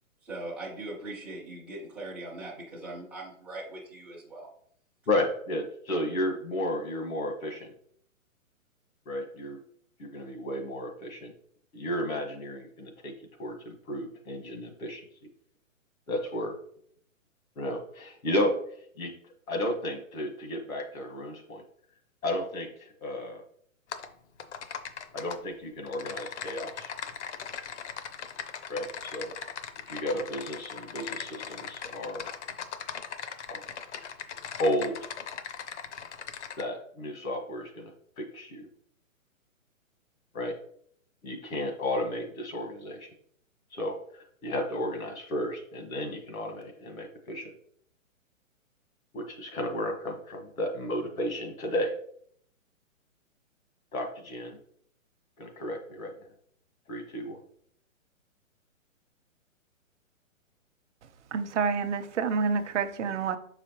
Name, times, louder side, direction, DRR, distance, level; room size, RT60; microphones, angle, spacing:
voice 1, 0.2-4.5, right 2 dB, 5° right, 0.4 m, -40 dB
voice 2, 5.1-7.7 9.1-9.6 10.0-11.3 11.7-13.1 13.4-15.0 16.1-16.5 17.6-18.6 19.0-19.1 19.5-21.6 22.2-23.4 25.1-26.9 28.7-29.3 29.9-32.3 33.5-33.7 34.6-35.1 36.6-37.9 38.2-38.7 40.3-40.6 41.2-43.1 43.7-47.5 49.1-51.9 53.9-54.6 55.4-56.1 56.9-57.4, left 1 dB, 80° left, 1.7 m, -33 dB
Typing, 23.9-24.1 24.4-25.4 25.9-36.6, left 7 dB, 55° left, 0.7 m, -39 dB
voice 3, 61.3-63.4, right 5 dB, 60° right, 0.8 m, -28 dB
6.5 x 4.9 x 3.0 m
hypercardioid pair, 155°, 41 cm